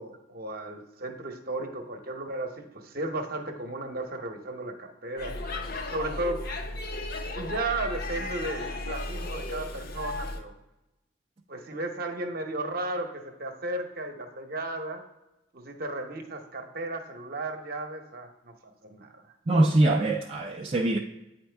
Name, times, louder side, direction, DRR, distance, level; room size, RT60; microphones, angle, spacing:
voice 1, 0.0-5.3 5.9-6.4 7.3-10.5 11.5-15.0 15.5-19.2, right 2 dB, 50° right, 0.8 m, -34 dB
Speech / Shout / Subway metro underground, 5.2-10.4, left 2 dB, 50° left, 0.7 m, -35 dB
voice 2, 19.5-21.0, right 2 dB, 30° right, 0.4 m, -23 dB
8.8 x 4.4 x 3.3 m
head